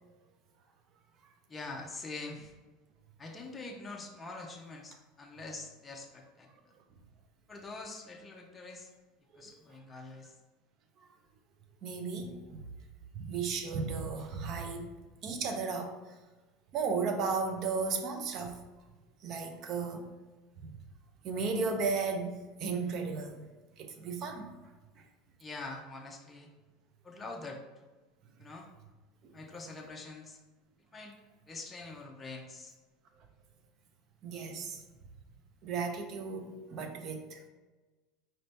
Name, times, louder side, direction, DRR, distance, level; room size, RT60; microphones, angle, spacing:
voice 1, 1.5-2.5 3.2-6.7 7.5-8.9 9.3-10.4 25.4-26.5 27.0-27.6 28.4-28.7 29.3-30.4 30.9-31.2 31.5-32.7, left 3 dB, 15° left, 1 dB, 0.5 m, -44 dB
voice 2, 11.8-12.6 13.1-14.9 15.2-16.0 16.7-18.5 19.2-20.0 20.6-20.8 21.2-22.3 22.6-23.4 23.8-24.5 34.2-34.8 35.6-37.5, right 4 dB, 45° right, 5 dB, 0.6 m, -34 dB
4.3 x 2.6 x 3.3 m, 1.3 s
supercardioid pair, 130°, 0 cm